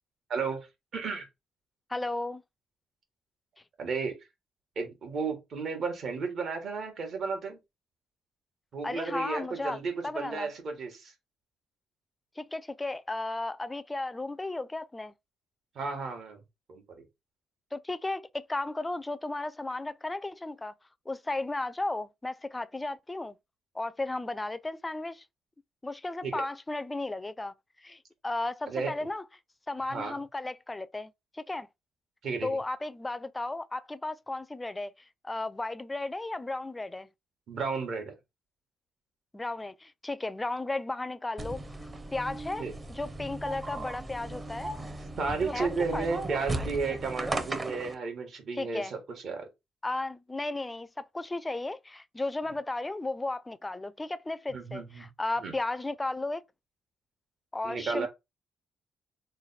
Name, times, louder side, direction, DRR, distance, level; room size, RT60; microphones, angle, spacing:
voice 1, 0.3-0.7 0.9-1.3 3.8-4.1 4.7-7.6 8.7-11.1 15.7-16.4 16.7-16.8 26.2-26.4 28.7-28.9 29.9-30.2 32.2-32.6 37.5-38.1 42.6-42.7 45.2-49.4 54.5-55.1 55.4-55.5 57.6-58.1, right 4 dB, 60° right, 1.3 m, -33 dB
voice 2, 1.9-2.4 8.8-10.5 12.4-15.1 17.7-20.7 21.1-23.4 23.7-25.2 25.8-27.5 27.8-29.2 29.7-31.7 32.4-34.9 35.2-37.1 39.3-44.7 45.5-46.1 48.6-48.9 49.8-56.4 57.5-58.1, left 2 dB, 15° left, 0.4 m, -34 dB
sound 1, 41.4-47.9, right 2 dB, 25° right, 0.7 m, -36 dB
3.2 x 2.2 x 4.0 m
cardioid pair, 90°, 0 cm